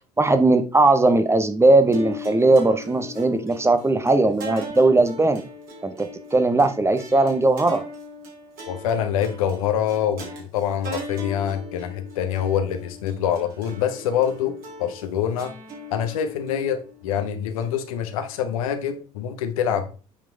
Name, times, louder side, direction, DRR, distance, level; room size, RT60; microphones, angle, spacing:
voice 1, 0.2-5.4 5.8-7.8, right 2 dB, 15° right, 9 dB, 0.9 m, -18 dB
sound 1, 1.9-18.4, left 1 dB, 50° right, 3.3 m, -39 dB
voice 2, 8.7-15.5 15.9-19.9, left 9 dB, 70° left, 8 dB, 1.0 m, -25 dB
8.6 x 5.2 x 3.3 m, 0.35 s
figure-of-eight pair, 60°, 19 cm